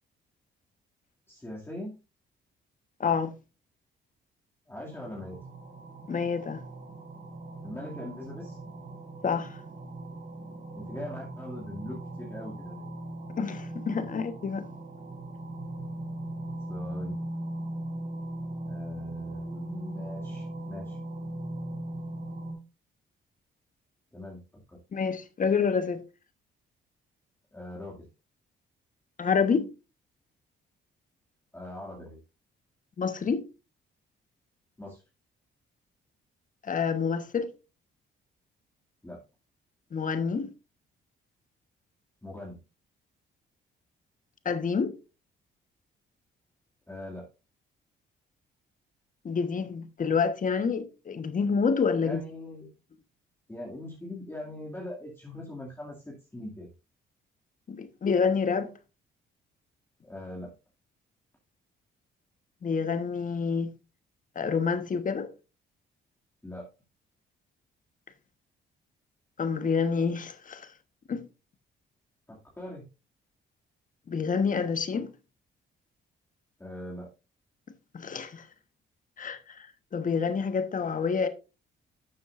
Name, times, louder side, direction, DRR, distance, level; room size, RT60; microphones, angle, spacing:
voice 1, 1.3-1.9 4.7-5.4 7.6-8.6 10.7-12.9 14.1-14.2 16.7-17.2 18.7-21.0 24.1-24.4 24.7-24.8 27.5-28.1 31.5-32.2 34.8-35.0 39.0-39.2 42.2-42.6 46.9-47.3 52.0-52.7 53.5-56.7 60.0-60.5 66.4-66.7 72.3-72.9 76.6-77.1, left 1 dB, 10° left, 2.4 m, -41 dB
voice 2, 3.0-3.3 6.1-6.6 9.2-9.6 13.4-14.7 24.9-26.0 29.2-29.7 33.0-33.5 36.6-37.5 39.9-40.5 44.4-44.9 49.2-52.2 57.7-58.7 62.6-63.7 64.3-65.3 69.4-70.7 71.1-71.2 74.1-75.1 77.9-78.5 79.2-81.3, left 5 dB, 40° left, 1.3 m, -28 dB
sound 1, 4.9-22.5, right 1 dB, 40° right, 3.8 m, -39 dB
12.0 x 7.1 x 2.6 m
cardioid pair, 90°, 20 cm